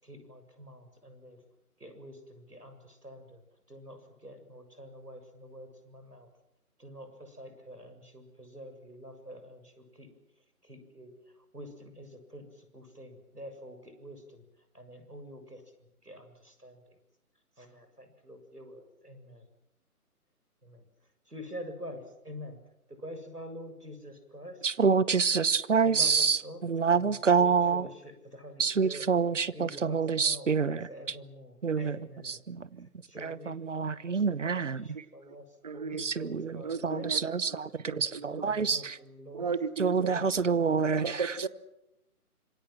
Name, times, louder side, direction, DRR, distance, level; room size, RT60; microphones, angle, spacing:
voice 1, 0.0-1.4 1.8-3.4 3.7-6.3 6.8-10.1 10.6-11.1 11.5-14.4 14.7-15.6 16.0-17.0 17.6-19.5 20.6-20.8 21.3-22.6 22.9-24.7 25.8-26.7 26.9-29.1 29.5-32.4 33.1-33.5 33.9-35.4 35.7-37.1 37.9-39.5 40.0-41.2, equal, 85° right, 7.3 m, -47 dB
voice 2, 24.6-27.9 28.6-30.9 31.6-32.0 32.2-32.9 33.2-34.9 36.0-37.7 38.0-39.0 39.8-41.0, right 5 dB, 55° right, 1.2 m, -27 dB
voice 3, 34.9-35.4 35.6-36.0 36.6-38.5 39.3-40.1 40.4-40.5 41.0-41.5, right 5 dB, 25° right, 0.9 m, -36 dB
26.5 x 23.0 x 7.7 m
figure-of-eight pair, 145°, 46 cm